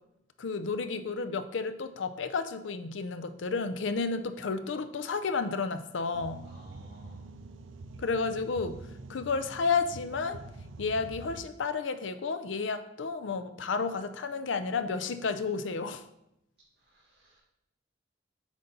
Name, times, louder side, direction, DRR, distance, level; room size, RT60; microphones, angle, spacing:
voice 1, 0.4-6.5 8.0-8.8 9.1-10.4 10.8-16.0, left 4 dB, 80° left, 11 dB, 0.5 m, -31 dB
sound 1, 6.1-11.4, right 3 dB, 90° right, 0.5 m, -46 dB
voice 2, 6.4-7.2 16.8-17.4, right 1 dB, 55° right, -7 dB, 1.6 m, -53 dB
8.1 x 4.1 x 3.9 m, 0.83 s
head